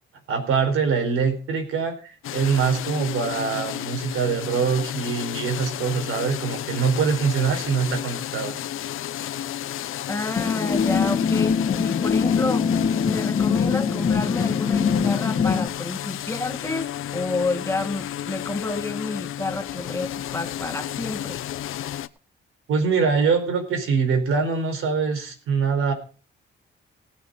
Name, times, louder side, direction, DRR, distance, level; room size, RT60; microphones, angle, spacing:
voice 1, 0.3-2.0 2.3-8.5 22.7-25.9, right 5 dB, 85° right, 6 dB, 4.3 m, -23 dB
sound 1, 2.2-22.1, left 11 dB, 80° left, 0.7 m, -32 dB
voice 2, 10.1-12.7 13.0-21.4, left 2 dB, 15° left, 6 dB, 1.5 m, -29 dB
sound 2, 10.4-15.7, left 6 dB, 45° left, 2.3 m, -23 dB
18.5 x 6.9 x 5.1 m, 0.37 s
cardioid pair, 105°, 21 cm